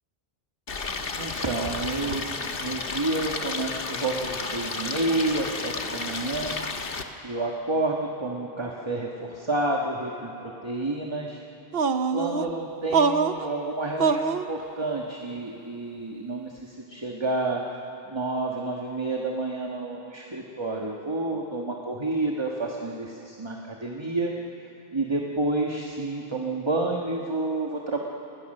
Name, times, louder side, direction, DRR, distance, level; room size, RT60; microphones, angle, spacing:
Stream, 0.7-7.0, left 4 dB, 65° left, 1.4 m, -32 dB
voice 1, 0.8-6.6 7.2-11.4 12.1-17.6 18.0-24.3 24.9-28.0, right 2 dB, 25° right, 0 dB, 1.5 m, -29 dB
sound 1, 11.7-12.5 12.9-13.4 14.0-14.4, right 5 dB, 70° right, 1.0 m, -23 dB
28.0 x 21.0 x 6.6 m, 2.9 s
omnidirectional pair, 1.0 m